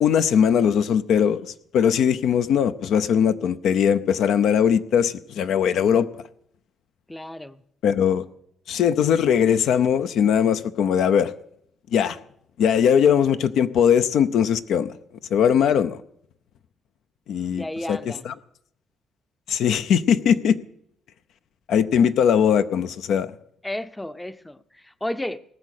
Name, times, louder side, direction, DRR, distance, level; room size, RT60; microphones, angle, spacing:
voice 1, 0.0-1.4 1.7-6.1 7.8-8.2 8.7-11.3 11.9-12.2 12.6-15.0 15.3-16.0 17.3-18.3 19.5-20.6 21.7-23.3, left 8 dB, 75° left, 0.6 m, -20 dB
voice 2, 7.1-7.6 17.5-18.3 23.6-25.4, left 1 dB, 10° left, 0.6 m, -32 dB
18.5 x 7.3 x 6.5 m
cardioid pair, 90°, 0 cm